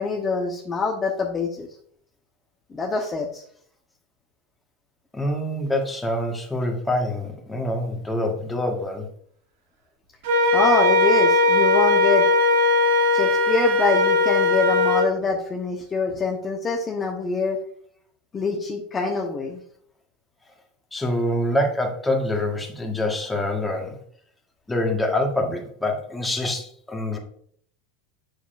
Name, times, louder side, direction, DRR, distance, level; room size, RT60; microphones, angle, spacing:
voice 1, 0.0-1.7 2.7-3.4 10.5-12.3 13.1-17.6 18.3-19.6, left 4 dB, 25° left, -1 dB, 1.0 m, -25 dB
voice 2, 5.1-9.1 20.9-24.0 24.7-27.2, left 1 dB, 5° left, 1 dB, 1.6 m, -25 dB
Wind instrument woodwind instrument, 10.2-15.1, left 2 dB, 70° right, 1.6 m, -19 dB
7.0 x 6.7 x 2.6 m, 0.63 s
hypercardioid pair, 105°, 0 cm